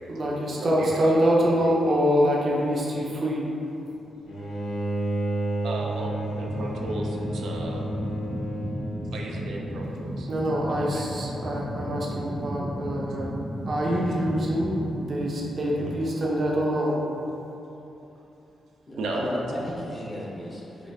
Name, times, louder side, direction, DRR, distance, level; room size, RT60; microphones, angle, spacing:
voice 1, 0.1-3.5 10.3-13.3 13.7-17.0, equal, 40° right, -4 dB, 0.7 m, -25 dB
voice 2, 0.6-1.6 5.6-7.9 9.1-10.3 10.6-11.3 15.7-15.9 19.0-19.4, right 2 dB, 80° right, -1 dB, 0.5 m, -34 dB
Bowed string instrument, 4.3-9.5, right 1 dB, 70° left, 0.9 m, -31 dB
sound 1, 5.8-16.7, equal, ahead, 0.3 m, -34 dB
voice 3, 18.9-20.9, equal, 20° left, -7 dB, 1.0 m, -34 dB
5.3 x 2.5 x 3.5 m, 3.0 s
wide cardioid pair, 145°, 0 cm